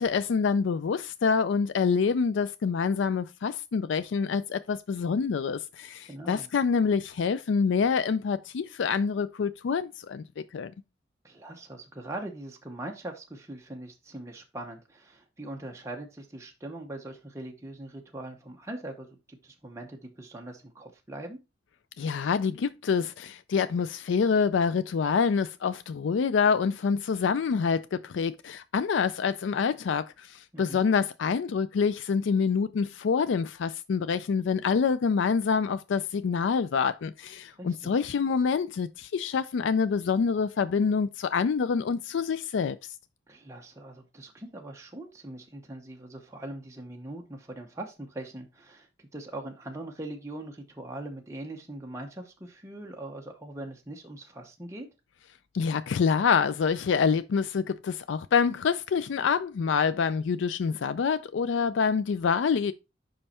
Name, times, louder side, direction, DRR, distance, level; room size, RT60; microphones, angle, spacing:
voice 1, 0.0-10.2 10.5-10.7 22.0-42.8 55.5-62.7, left 5 dB, 75° left, 0.4 m, -26 dB
voice 2, 6.1-6.5 11.2-21.4 30.5-30.9 37.6-37.9 43.3-54.9, right 1 dB, 15° right, 0.8 m, -41 dB
5.4 x 5.4 x 4.2 m
head